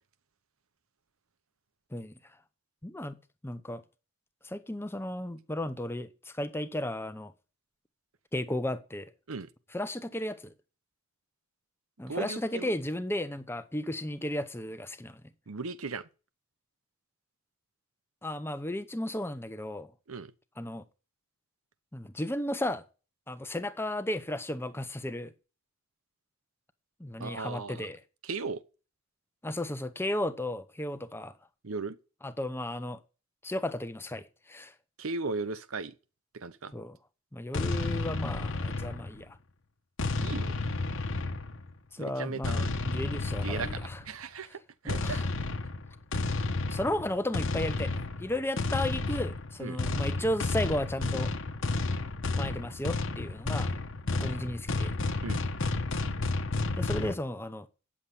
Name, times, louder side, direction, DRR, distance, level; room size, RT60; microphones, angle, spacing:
voice 1, 2.8-3.2 3.4-3.8 4.4-7.3 8.3-9.1 9.7-10.5 12.0-15.2 18.2-19.9 20.6-20.8 21.9-22.8 23.3-25.3 27.0-28.0 29.4-31.3 32.2-33.0 33.4-34.7 36.7-37.0 37.3-39.4 41.9-44.0 44.5-44.6 44.8-45.3 46.7-51.3 52.3-53.8 54.1-54.9 56.8-57.7, left 1 dB, 10° left, 0.8 m, -34 dB
voice 2, 12.1-12.7 15.5-16.0 20.1-20.3 27.2-27.9 28.2-28.6 31.6-32.0 35.0-35.9 36.3-36.7 40.2-40.5 42.0-42.7 43.4-44.6 44.8-45.2 49.6-49.8 55.2-55.4, right 4 dB, 70° right, 0.9 m, -36 dB
sound 1, 37.5-39.3 40.0-41.7 42.4-44.1 44.9-57.1, left 3 dB, 60° left, 1.1 m, -31 dB
9.6 x 7.4 x 8.6 m
head